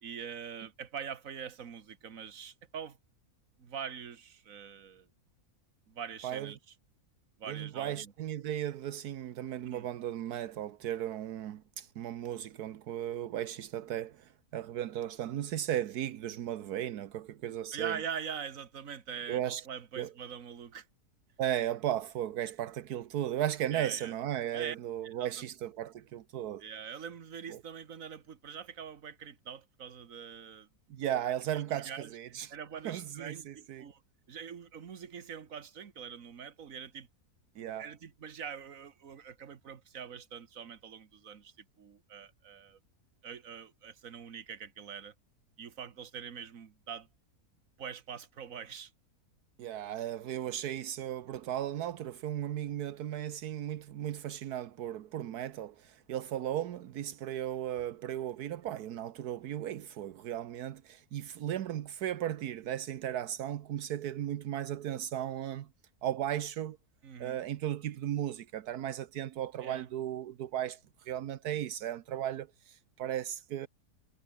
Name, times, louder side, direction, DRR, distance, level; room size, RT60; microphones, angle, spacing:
voice 1, 0.0-3.0 3.6-5.1 5.9-6.6 7.4-8.1 9.7-9.9 17.7-20.9 23.7-24.1 24.5-24.8 25.0-25.5 26.6-30.7 31.5-32.1 32.5-34.0 34.3-37.1 37.6-42.8 43.2-45.1 45.6-47.1 47.8-48.9 67.0-67.4 69.6-69.9, right 7 dB, 60° right, 1.8 m, -43 dB
voice 2, 7.5-18.0 19.3-19.7 20.0-20.1 21.4-26.6 27.5-27.6 30.9-32.5 32.8-33.9 37.6-37.9 49.6-65.7 66.0-66.8 67.2-73.7, right 11 dB, 80° right, 1.4 m, -36 dB
omnidirectional pair, 1.6 m